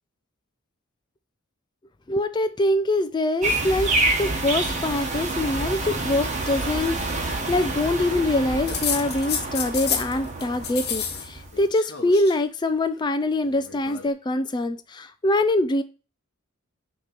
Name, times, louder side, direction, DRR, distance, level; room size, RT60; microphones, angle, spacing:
voice 1, 2.1-3.9 4.2-15.8, left 1 dB, 20° left, 9 dB, 0.4 m, -24 dB
sound 1, 3.4-11.7, right 2 dB, 35° right, 1.2 m, -28 dB
sound 2, 8.7-10.1 10.4-11.3 11.5-12.4 13.4-14.1, left 7 dB, 50° left, 1.0 m, -30 dB
6.5 x 3.0 x 5.8 m, 0.33 s
head